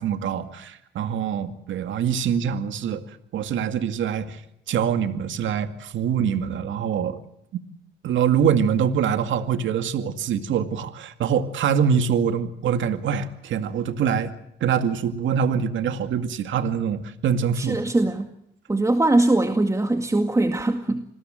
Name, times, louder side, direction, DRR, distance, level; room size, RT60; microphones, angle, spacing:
voice 1, 0.0-4.4 4.7-7.2 8.0-14.3 14.6-17.8, right 7 dB, 75° right, 9 dB, 2.2 m, -24 dB
voice 2, 17.6-18.3 18.7-21.1, right 2 dB, 15° right, 6 dB, 2.0 m, -21 dB
27.5 x 20.5 x 7.7 m, 0.76 s
cardioid pair, 90°, 20 cm